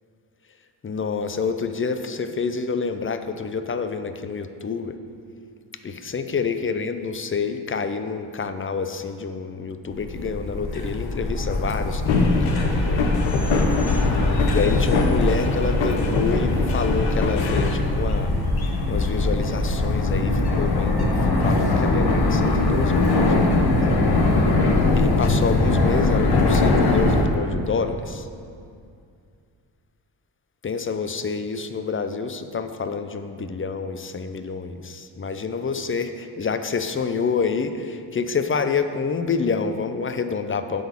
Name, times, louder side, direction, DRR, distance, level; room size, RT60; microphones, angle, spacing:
voice 1, 0.8-5.0 5.8-13.3 14.5-18.4 18.9-23.7 24.9-28.3 30.6-40.8, left 5 dB, 25° left, 9 dB, 0.7 m, -28 dB
sound 1, 9.9-27.2, left 2 dB, 55° left, 1.3 m, -21 dB
sound 2, 12.1-17.7, left 3 dB, 85° left, 0.9 m, -24 dB
9.9 x 4.0 x 6.9 m, 2.3 s
supercardioid pair, 50°, 45 cm